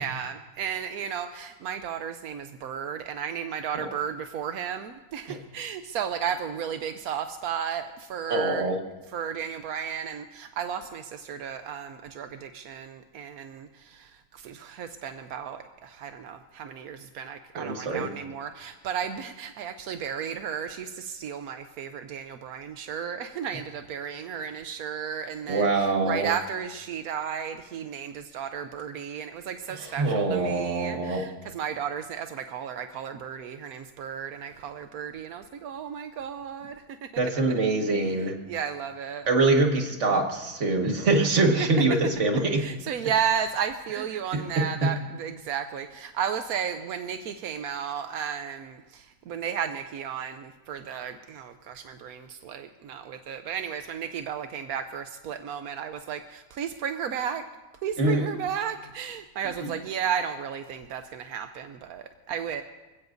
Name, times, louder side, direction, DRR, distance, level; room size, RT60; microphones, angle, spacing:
voice 1, 0.0-8.7 9.1-37.1 38.0-38.1 38.5-39.3 41.6-41.7 42.6-57.4 57.8-62.6, right 8 dB, 85° right, 7 dB, 1.2 m, -34 dB
voice 2, 8.3-8.8 17.6-18.1 25.5-26.3 29.8-31.3 37.2-38.4 39.3-42.7 44.3-44.9 58.0-58.3 59.6-59.7, right 3 dB, 55° right, 2 dB, 2.0 m, -24 dB
26.0 x 16.0 x 2.6 m, 1.2 s
omnidirectional pair, 1.5 m